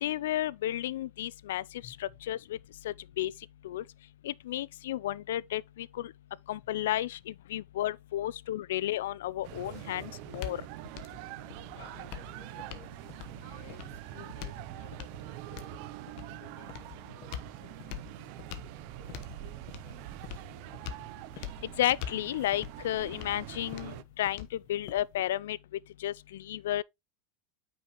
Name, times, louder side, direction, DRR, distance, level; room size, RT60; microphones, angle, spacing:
voice 1, 0.0-2.6 2.8-3.3 3.6-3.8 4.2-6.1 6.5-10.6 21.6-25.6 26.0-26.8, left 13 dB, 85° left, 0.3 m, -32 dB
voice 2, 1.8-2.2 6.6-6.7 11.7-15.9 16.3-18.2 18.9-20.6, left 8 dB, 65° left, 1.9 m, -57 dB
sound 1, 9.3-25.3, left 10 dB, 50° left, 1.0 m, -45 dB
sound 2, 9.4-24.0, right 18 dB, 50° right, 0.4 m, -45 dB
8.9 x 5.3 x 3.0 m
supercardioid pair, 160°, 0 cm